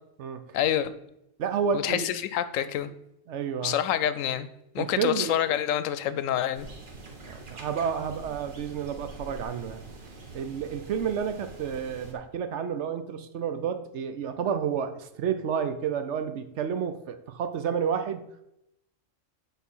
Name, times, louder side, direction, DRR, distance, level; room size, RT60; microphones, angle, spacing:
voice 1, 0.5-0.9 1.7-2.9 3.6-4.5 4.7-6.7, left 10 dB, 90° left, 13 dB, 1.0 m, -27 dB
voice 2, 1.4-2.1 2.6-2.7 3.3-3.7 4.8-5.3 7.2-9.8 10.3-18.2, right 7 dB, 65° right, 9 dB, 0.9 m, -30 dB
sound 1, 6.5-12.1, right 3 dB, 45° right, 1.3 m, -45 dB
8.3 x 4.0 x 5.5 m, 0.83 s
omnidirectional pair, 1.3 m